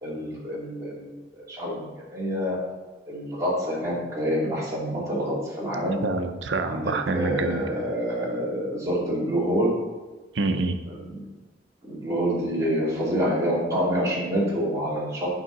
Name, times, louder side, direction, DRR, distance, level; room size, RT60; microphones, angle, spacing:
voice 1, 0.0-2.6 3.1-5.9 6.6-6.8 7.1-9.7 11.0-11.2 11.8-15.3, equal, 15° right, -7 dB, 2.7 m, -27 dB
voice 2, 6.0-7.7 10.3-10.8, right 3 dB, 80° right, 7 dB, 0.6 m, -26 dB
9.1 x 5.5 x 4.0 m, 1.2 s
head